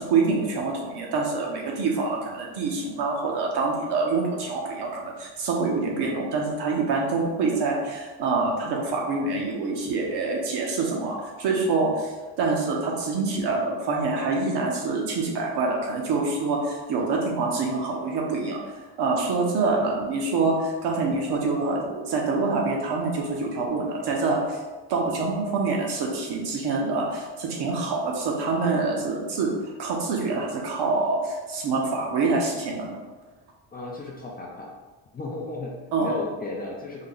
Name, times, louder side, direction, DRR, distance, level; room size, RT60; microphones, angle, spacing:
voice 1, 0.0-18.6 19.0-24.6 24.9-33.0 35.9-36.2, right 3 dB, 65° right, -1 dB, 0.9 m, -26 dB
voice 2, 33.7-34.7 35.1-37.0, left 2 dB, 25° left, -3 dB, 0.4 m, -34 dB
3.7 x 2.2 x 3.8 m, 1.3 s
cardioid pair, 140°, 44 cm